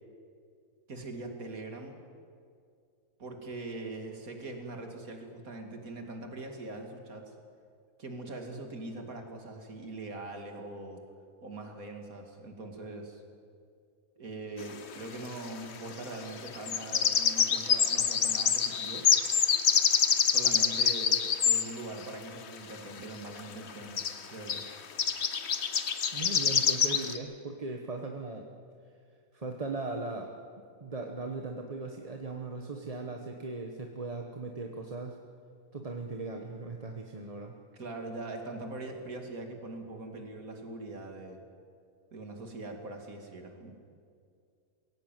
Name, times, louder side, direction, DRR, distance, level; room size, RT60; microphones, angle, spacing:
voice 1, 0.9-2.0 3.2-7.3 8.0-11.0 11.4-13.2 14.2-19.1 20.2-24.7 37.7-41.4 42.1-43.8, right 2 dB, 65° right, 4 dB, 2.9 m, -42 dB
sound 1, 14.6-14.7 16.5-21.7 23.4-23.5 23.7-23.8 24.0-24.2 24.5-24.7 25.0-27.2, left 7 dB, 50° left, 1.1 m, -26 dB
voice 2, 26.1-28.5 29.3-30.3 30.8-35.2 35.7-37.6, right 3 dB, 25° right, 2 dB, 1.2 m, -38 dB
21.5 x 16.5 x 9.2 m, 2.3 s
omnidirectional pair, 1.6 m